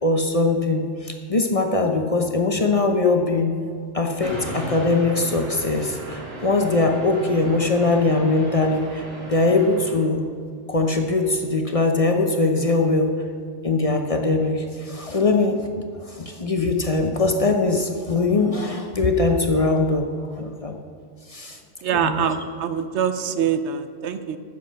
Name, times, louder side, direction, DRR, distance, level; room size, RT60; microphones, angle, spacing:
voice 1, 0.0-3.5 3.9-10.2 10.7-13.1 13.6-20.0 20.4-20.7 21.3-21.6 21.9-22.3, left 3 dB, 35° left, 3 dB, 0.8 m, -21 dB
sound 1, 4.2-9.9, right 1 dB, 55° right, 2.5 m, -36 dB
voice 2, 21.8-24.4, right 8 dB, 75° right, 10 dB, 0.9 m, -24 dB
9.9 x 7.1 x 6.3 m, 2.2 s
omnidirectional pair, 1.2 m